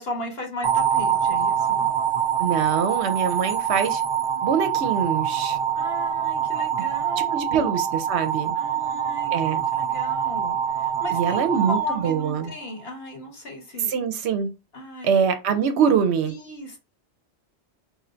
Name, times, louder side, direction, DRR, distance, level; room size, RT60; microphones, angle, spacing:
voice 1, 0.0-1.9 5.7-7.8 8.5-13.9 14.7-15.1 16.2-16.8, left 2 dB, 60° left, 1.3 m, -36 dB
sound 1, 0.6-12.8, right 9 dB, 40° right, 0.4 m, -25 dB
voice 2, 2.4-4.0 4.4-5.6 7.3-8.6 9.3-9.6 11.1-12.5 13.9-14.5 15.0-16.3, right 7 dB, 75° right, 0.8 m, -24 dB
3.0 x 2.5 x 4.3 m
omnidirectional pair, 1.2 m